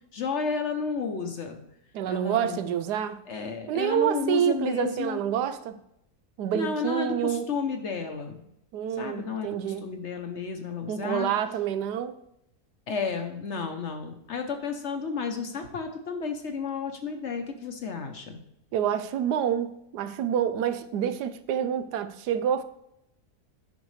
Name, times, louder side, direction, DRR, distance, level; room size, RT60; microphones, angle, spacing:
voice 1, 0.1-1.6 2.1-2.6 3.3-5.2 6.5-8.5 9.0-11.3 12.9-18.4, left 5 dB, 55° left, 1.0 m, -32 dB
voice 2, 1.9-3.2 3.7-5.8 6.4-7.5 8.7-9.9 10.9-12.2 18.7-22.6, right 9 dB, 85° right, 1.2 m, -28 dB
9.3 x 6.2 x 3.2 m
omnidirectional pair, 1.7 m